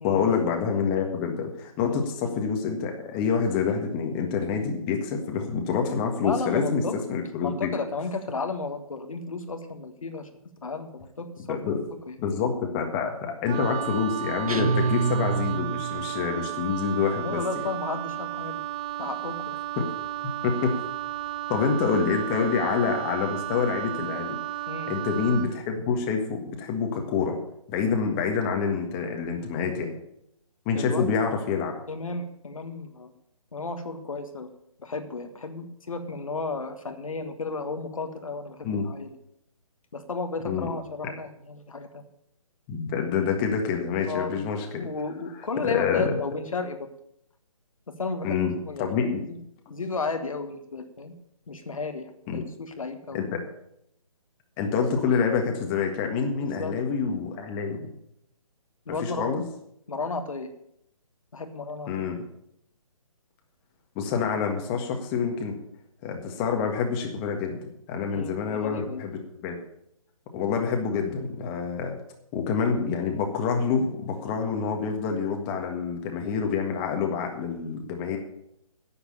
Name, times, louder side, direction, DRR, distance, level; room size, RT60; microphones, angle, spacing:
voice 1, 0.0-7.7 11.5-11.8 12.2-17.6 19.8-19.9 20.4-20.8 21.5-24.4 24.9-27.4 27.7-30.0 30.7-31.7 38.6-38.9 40.4-40.7 42.7-44.9 45.6-46.1 48.2-49.2 52.3-52.4 53.1-53.3 54.6-57.9 59.0-59.4 61.9-62.2 64.0-65.5 66.0-67.6 67.9-69.6 70.3-72.0 72.3-78.2, left 6 dB, 20° left, 3 dB, 1.7 m, -27 dB
voice 2, 6.2-6.9 7.4-10.3 10.6-11.8 12.1-12.2 17.2-18.6 19.0-19.6 24.7-24.9 30.7-31.1 31.9-33.1 33.5-34.5 34.8-39.1 39.9-42.0 44.1-44.4 44.8-46.9 47.9-48.9 49.3-49.4 49.7-51.1 51.5-53.2 56.4-56.8 58.9-59.3 59.9-60.5 61.3-62.1 68.1-69.0, left 3 dB, 70° left, 7 dB, 1.6 m, -33 dB
Wind instrument woodwind instrument, 13.5-25.5, right 13 dB, 10° right, 0.3 m, -33 dB
sound 1, 14.5-16.2, right 5 dB, 80° right, 0.9 m, -27 dB
10.0 x 7.9 x 8.7 m, 0.77 s
figure-of-eight pair, 145°, 18 cm